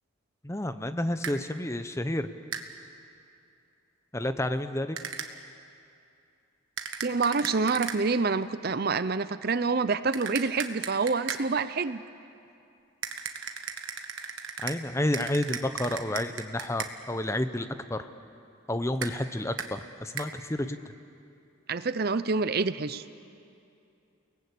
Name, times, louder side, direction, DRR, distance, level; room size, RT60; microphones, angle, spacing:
voice 1, 0.4-2.3 4.1-5.0 14.6-18.1 18.7-20.8, left 1 dB, 15° left, 10 dB, 0.7 m, -30 dB
sound 1, 1.2-1.4 2.5-2.7 5.0-5.3 6.8-8.0 10.1-11.4 13.0-14.8 15.1-16.9 19.0-19.1 19.6-19.7 20.2-20.3, right 7 dB, 65° right, 1.5 m, -36 dB
voice 2, 7.0-12.0 21.7-23.0, right 4 dB, 45° right, 14 dB, 0.6 m, -27 dB
30.0 x 19.0 x 8.3 m, 2.6 s
head